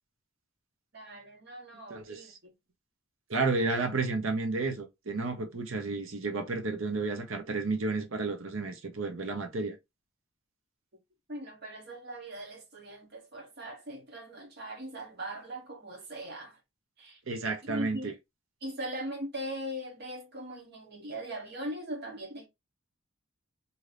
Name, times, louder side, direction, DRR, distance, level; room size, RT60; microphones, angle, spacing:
voice 1, 0.9-2.5 11.3-16.6 17.0-17.2 17.7-18.1 18.6-22.5, right 1 dB, 55° right, 0.9 m, -40 dB
voice 2, 1.9-2.3 3.3-9.8 17.3-18.1, right 3 dB, 75° right, 0.8 m, -31 dB
2.7 x 2.5 x 3.2 m
head